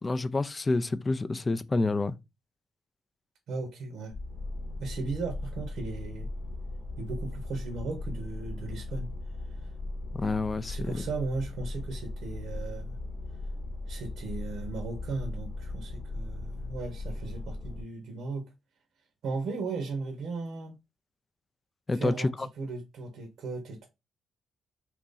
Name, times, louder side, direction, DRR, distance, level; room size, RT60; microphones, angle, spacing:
voice 1, 0.0-2.2 10.1-11.0 21.9-22.5, left 3 dB, 25° left, 0.3 m, -28 dB
voice 2, 3.5-4.1 4.8-6.3 7.0-9.1 9.5-9.7 10.7-13.0 13.9-18.5 19.2-20.8 21.9-23.9, right 3 dB, 70° right, 0.8 m, -36 dB
sound 1, 4.1-17.8, left 2 dB, 55° left, 0.8 m, -38 dB
2.8 x 2.6 x 3.8 m
cardioid pair, 90°, 0 cm